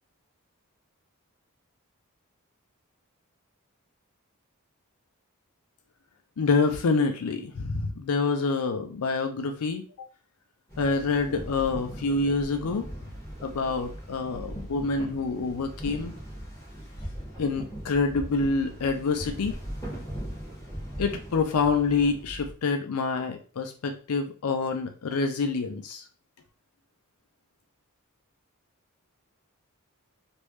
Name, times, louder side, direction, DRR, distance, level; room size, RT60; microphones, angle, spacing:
voice 1, 6.4-10.1 10.8-12.9 13.4-16.1 17.4-19.6 21.0-26.0, left 4 dB, 85° left, 6 dB, 0.5 m, -27 dB
sound 1, 10.7-22.5, equal, 15° left, 1.5 m, -39 dB
3.2 x 2.6 x 3.1 m, 0.38 s
head